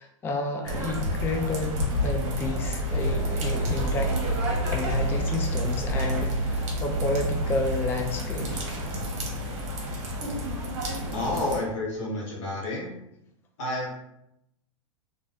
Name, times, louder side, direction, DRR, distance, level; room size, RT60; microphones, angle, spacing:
voice 1, 0.0-4.1 4.7-8.7, left 3 dB, 15° left, 3 dB, 0.3 m, -31 dB
sound 1, 0.6-11.6, equal, 40° right, 1.0 m, -30 dB
sound 2, 2.9-7.9, right 2 dB, 20° right, 1.3 m, -30 dB
voice 2, 11.1-13.0 13.6-13.9, left 2 dB, 55° left, -5 dB, 1.1 m, -30 dB
3.1 x 2.5 x 2.3 m, 0.82 s
hypercardioid pair, 105°, 17 cm